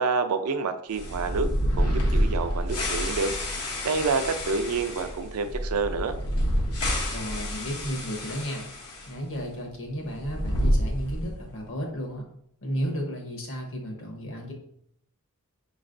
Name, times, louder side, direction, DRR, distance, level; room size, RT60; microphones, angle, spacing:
voice 1, 0.0-3.3 3.8-6.2, right 4 dB, 80° right, 8 dB, 0.5 m, -28 dB
sound 1, 0.9-9.1 9.4-9.5 10.1-11.5, equal, 90° left, 1.1 m, -28 dB
voice 2, 7.1-8.6 9.1-12.2 12.6-14.5, equal, 60° left, 1 dB, 1.1 m, -33 dB
5.8 x 3.1 x 2.6 m, 0.70 s
head